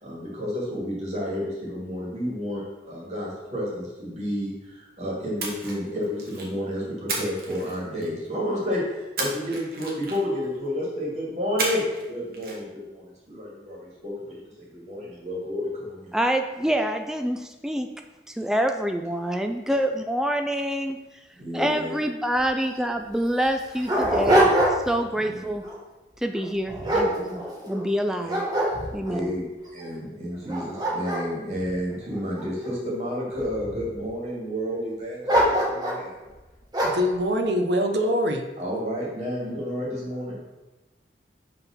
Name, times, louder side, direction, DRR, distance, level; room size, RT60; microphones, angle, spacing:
voice 1, 0.0-14.4 14.7-16.1 21.4-22.0 25.1-25.4 28.2-28.4 29.0-29.5 29.7-36.1 38.6-40.4, equal, 40° right, -5 dB, 2.4 m, -31 dB
Splash splatter, 5.4-6.6 7.1-8.3 9.2-10.4 11.6-12.1 12.3-12.6, right 3 dB, 55° right, 1.3 m, -32 dB
voice 2, 16.1-17.9 18.4-21.0 21.5-24.5 24.9-25.6 26.2-28.4 28.9-29.3, equal, 5° right, 5 dB, 0.3 m, -26 dB
Dog, 22.4-22.5 22.7-22.8 23.4-25.0 25.4-25.8 26.3-27.8 28.3-29.2 29.8-29.9 30.3-32.7 33.3-34.0 35.2-36.1 36.7-37.1, right 1 dB, 20° right, 1.2 m, -24 dB
voice 3, 36.8-38.4, equal, 75° right, 4 dB, 0.8 m, -23 dB
5.7 x 3.8 x 5.8 m, 1.1 s
head